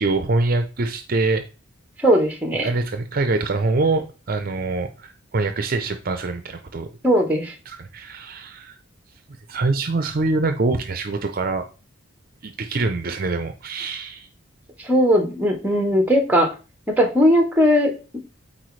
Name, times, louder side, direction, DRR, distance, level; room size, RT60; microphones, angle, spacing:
voice 1, 0.0-1.4 2.6-6.9 7.7-8.8 9.5-11.6 12.4-14.3, right 3 dB, 45° right, 8 dB, 0.6 m, -24 dB
voice 2, 2.0-2.7 7.0-7.5 14.8-16.5 16.9-18.2, equal, 10° right, 4 dB, 1.1 m, -18 dB
8.9 x 4.3 x 3.2 m, 0.33 s
head